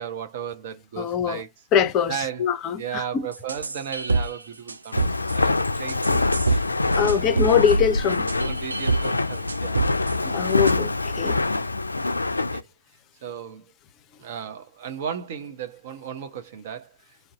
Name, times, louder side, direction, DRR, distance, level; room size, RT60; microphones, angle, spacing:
voice 1, 0.0-1.5 2.1-2.5 2.8-6.7 6.9-7.5 8.4-10.6 11.5-11.7 12.0-12.7 13.2-13.7 14.2-17.2, right 8 dB, 45° right, 0.7 m, -36 dB
voice 2, 1.0-1.4 1.7-3.0 7.0-8.3 10.2-11.4, left 7 dB, 25° left, 0.5 m, -23 dB
sound 1, 3.3-4.4 4.7-5.4 5.9-6.6 6.9-7.8 8.1-9.1 9.5-10.1 10.5-10.7, right 3 dB, 80° right, 0.4 m, -25 dB
Walk footsteps, 4.9-12.6, left 2 dB, 85° left, 0.3 m, -25 dB
2.6 x 2.0 x 3.9 m
figure-of-eight pair, 120°, 0 cm